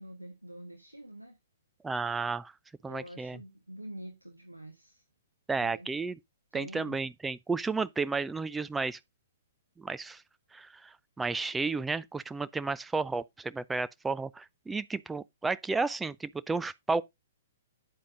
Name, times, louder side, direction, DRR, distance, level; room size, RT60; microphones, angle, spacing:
voice 1, 0.0-1.4 2.9-5.0 5.6-5.9 6.5-7.0, right 1 dB, 90° right, 1.5 m, -46 dB
voice 2, 1.8-2.5 2.8-3.4 5.5-6.2 6.5-9.0 9.8-10.2 10.5-17.0, right 4 dB, 10° right, 0.4 m, -32 dB
9.5 x 8.3 x 2.6 m
figure-of-eight pair, 115°, 0 cm